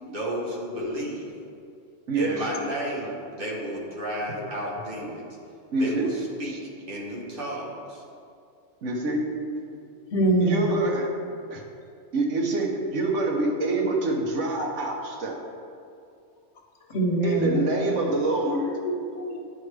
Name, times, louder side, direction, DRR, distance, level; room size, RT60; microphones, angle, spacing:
voice 1, 0.1-1.3 2.1-5.3 5.8-8.0, equal, 50° right, -4 dB, 1.3 m, -33 dB
voice 2, 2.1-2.5 4.5-4.7 5.7-6.2 6.4-6.6 8.8-9.3 10.4-11.1 11.5-11.6 12.1-15.4 17.2-18.7, right 2 dB, 80° right, 1 dB, 1.2 m, -26 dB
voice 3, 10.1-10.7 16.9-17.6 18.5-18.6 18.8-19.4, right 1 dB, 70° left, 1 dB, 1.1 m, -24 dB
9.6 x 4.6 x 3.2 m, 2.5 s
omnidirectional pair, 1.2 m